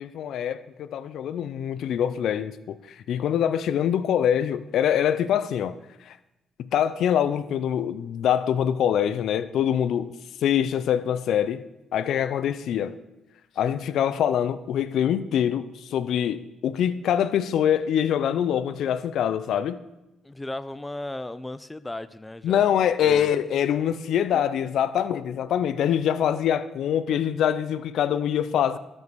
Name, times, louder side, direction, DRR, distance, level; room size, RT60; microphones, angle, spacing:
voice 1, 0.0-2.8 3.1-5.7 6.1-6.2 6.6-10.1 10.4-11.6 11.9-13.0 13.6-19.8 22.4-28.8, left 9 dB, 75° left, 0.6 m, -24 dB
voice 2, 20.2-22.6 23.0-23.3 24.3-24.4, left 1 dB, 15° left, 0.5 m, -35 dB
12.5 x 5.4 x 6.2 m
cardioid pair, 90°, 0 cm